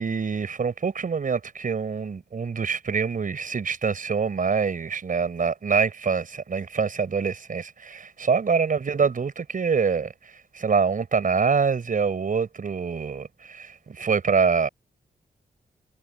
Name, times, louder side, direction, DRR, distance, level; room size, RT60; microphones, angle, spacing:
voice 1, 0.0-14.7, right 5 dB, 55° right, 4.7 m, -25 dB
wide cardioid pair, 95°, 17 cm